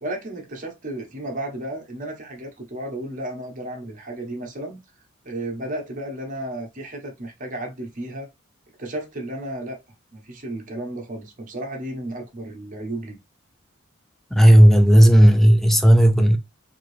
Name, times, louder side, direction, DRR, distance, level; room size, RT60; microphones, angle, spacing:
voice 1, 0.0-4.8 5.2-8.3 8.8-9.8 10.1-13.2, right 1 dB, 40° right, 1.1 m, -33 dB
voice 2, 14.3-16.4, equal, ahead, 0.4 m, -12 dB
3.8 x 2.7 x 3.2 m
head